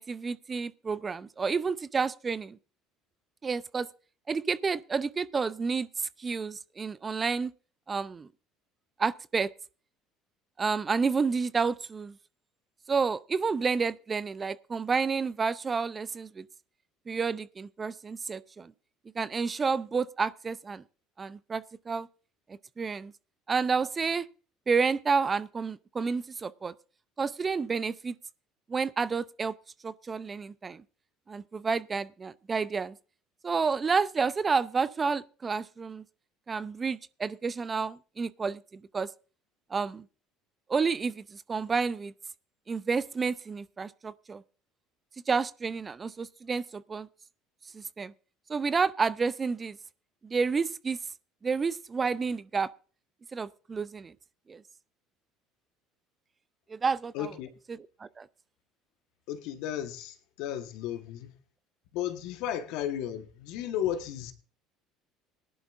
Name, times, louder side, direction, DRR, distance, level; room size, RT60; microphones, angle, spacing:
voice 1, 0.0-2.6 3.4-3.9 4.3-5.9 6.2-7.5 7.9-8.3 9.0-9.5 10.6-12.1 12.9-16.4 17.1-18.7 19.2-20.8 21.2-22.1 22.8-23.1 23.5-24.3 24.7-26.7 27.2-28.2 28.7-29.5 29.8-30.8 31.3-33.0 33.4-36.0 36.5-38.6 38.9-39.1 39.7-40.0 40.7-42.1 42.7-44.4 45.3-47.1 47.7-48.1 48.5-49.8 50.2-51.0 51.4-52.7 53.3-54.1 54.5-54.6 56.7-57.1 58.0-58.3, right 5 dB, 30° right, 0.5 m, -30 dB
voice 2, 57.1-57.5 59.3-61.3 61.9-64.3, left 10 dB, 70° left, 1.3 m, -34 dB
18.5 x 11.0 x 2.5 m
hypercardioid pair, 75°, 0 cm